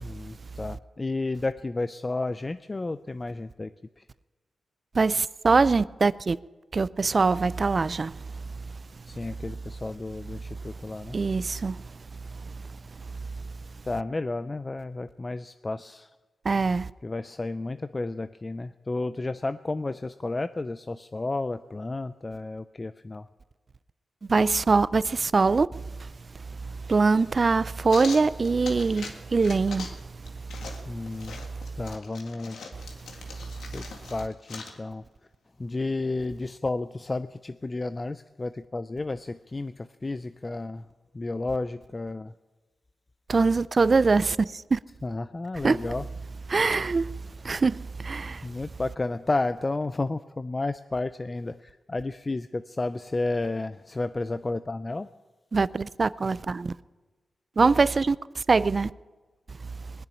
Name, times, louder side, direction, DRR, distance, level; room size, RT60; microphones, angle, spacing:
voice 1, 0.0-4.0 9.1-11.2 13.9-16.1 17.0-23.3 30.9-31.4 31.8-32.6 33.7-33.8 34.1-35.0 35.6-40.9 41.1-42.3 45.0-46.1 48.4-55.1, left 2 dB, 30° left, 0.4 m, -32 dB
voice 2, 4.9-6.4 6.7-8.2 11.1-11.9 12.3-12.6 16.4-16.9 24.3-26.1 26.6-29.9 30.2-30.3 30.6-30.7 43.3-44.8 45.6-45.8 46.5-47.1 47.4-48.5 55.5-56.7 57.6-58.9, right 4 dB, 45° right, 0.4 m, -23 dB
sound 1, 27.9-29.1 29.4-30.0 30.3-34.8, left 4 dB, 85° left, 1.8 m, -42 dB
20.5 x 6.9 x 9.9 m
cardioid pair, 70°, 0 cm